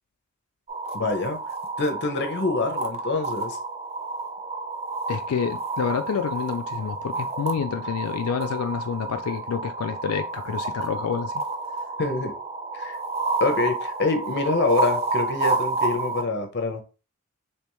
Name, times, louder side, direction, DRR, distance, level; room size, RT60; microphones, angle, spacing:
sound 1, 0.7-16.2, right 3 dB, 30° right, 0.5 m, -30 dB
voice 1, 0.9-1.4 1.8-3.6 12.0-12.3 12.7-13.0 13.4-16.8, left 3 dB, 55° left, 0.7 m, -25 dB
voice 2, 5.1-11.3, left 6 dB, 90° left, 0.4 m, -28 dB
3.4 x 3.0 x 3.1 m
head